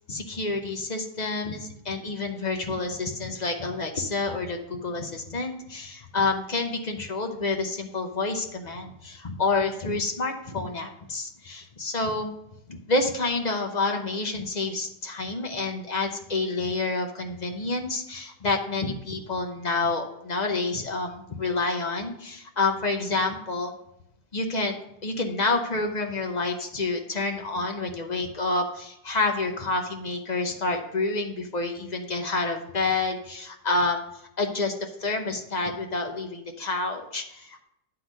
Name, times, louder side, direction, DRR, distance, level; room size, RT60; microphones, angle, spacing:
voice 1, 0.1-12.3 12.7-23.7 24.3-34.0 34.4-37.6, left 3 dB, 40° left, 4 dB, 0.6 m, -28 dB
10.5 x 3.9 x 6.4 m, 0.78 s
omnidirectional pair, 1.9 m